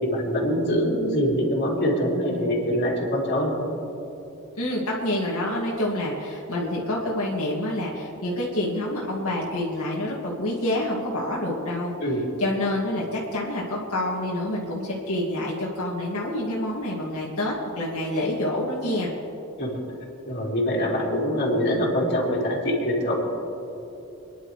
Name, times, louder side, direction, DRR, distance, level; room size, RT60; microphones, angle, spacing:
voice 1, 0.0-3.7 12.0-12.3 19.6-19.8 20.3-23.1, equal, 50° left, -4 dB, 3.2 m, -24 dB
voice 2, 4.6-11.9 12.4-19.1, left 1 dB, 85° left, -5 dB, 2.2 m, -27 dB
27.5 x 11.0 x 3.3 m, 2.9 s
head